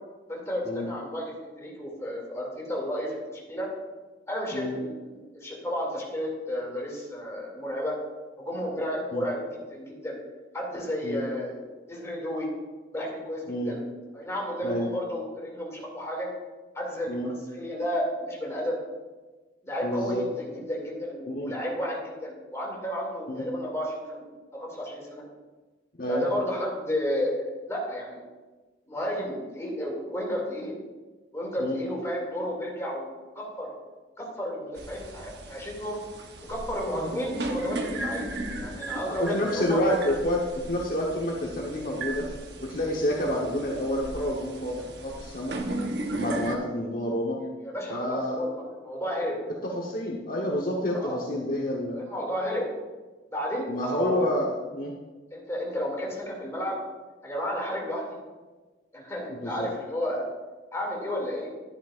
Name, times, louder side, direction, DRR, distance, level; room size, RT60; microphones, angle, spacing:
voice 1, 0.3-3.7 4.3-7.9 8.4-10.2 10.5-11.6 11.9-12.5 12.9-13.8 14.1-16.3 16.7-18.8 19.6-24.2 24.5-25.2 26.1-28.2 28.9-30.7 31.3-33.1 33.4-33.8 34.2-36.0 36.5-38.3 38.6-39.8 47.4-49.4 50.9-51.2 51.9-52.7 53.3-54.5 55.3-56.8 57.2-58.2 58.9-60.3 60.7-61.5, equal, 15° left, -3 dB, 2.4 m, -32 dB
voice 2, 19.8-20.2 21.3-21.5 23.3-23.4 26.0-26.2 31.6-31.8 36.9-37.1 39.1-42.3 42.6-45.5 46.1-47.4 47.9-48.4 49.6-52.0 53.7-54.9 59.3-59.7, left 1 dB, 50° left, -2 dB, 1.0 m, -28 dB
sound 1, 34.8-46.5, right 2 dB, 65° right, 1.0 m, -36 dB
11.5 x 10.0 x 2.5 m, 1.2 s
head